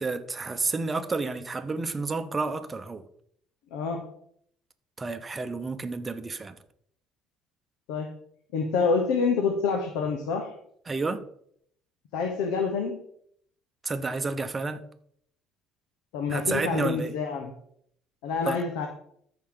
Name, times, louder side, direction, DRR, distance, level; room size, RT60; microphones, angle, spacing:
voice 1, 0.0-3.0 5.0-6.5 10.9-11.2 13.8-14.9 16.3-17.1 18.4-18.6, right 3 dB, 20° right, 0.9 m, -30 dB
voice 2, 3.7-4.0 7.9-8.1 8.5-10.5 12.1-13.0 16.1-17.5 18.2-18.9, left 5 dB, 85° left, 1.2 m, -27 dB
13.5 x 5.6 x 3.9 m
cardioid pair, 110°, 0 cm